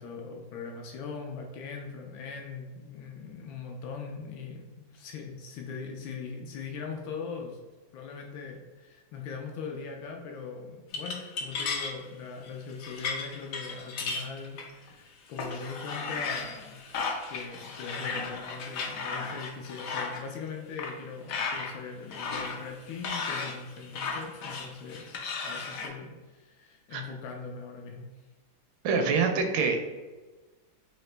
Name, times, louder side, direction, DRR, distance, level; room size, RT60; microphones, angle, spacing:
voice 1, 0.0-7.6 7.9-16.9 17.3-28.1, left 5 dB, 90° left, 1 dB, 1.4 m, -41 dB
sound 1, 10.9-12.0 12.4-12.5 12.8-14.9 15.4-20.2 20.8-20.9 21.3-21.7 22.1-25.9, left 4 dB, 70° left, 0.8 m, -35 dB
voice 2, 28.8-30.0, right 5 dB, 85° right, 5 dB, 1.4 m, -26 dB
4.0 x 2.8 x 3.2 m, 1.2 s
omnidirectional pair, 2.1 m